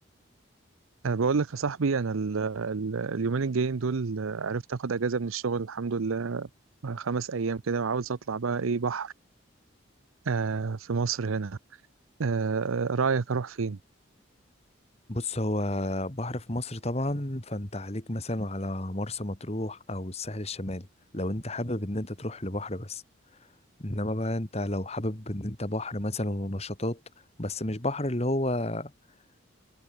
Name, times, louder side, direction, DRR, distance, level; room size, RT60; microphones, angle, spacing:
voice 1, 1.0-6.5 6.8-9.1 10.3-11.6 12.2-13.8, right 4 dB, 85° right, 0.6 m, -28 dB
voice 2, 15.1-20.9 21.1-23.0 23.8-27.0 27.4-28.9, left 1 dB, 30° left, 2.3 m, -31 dB
head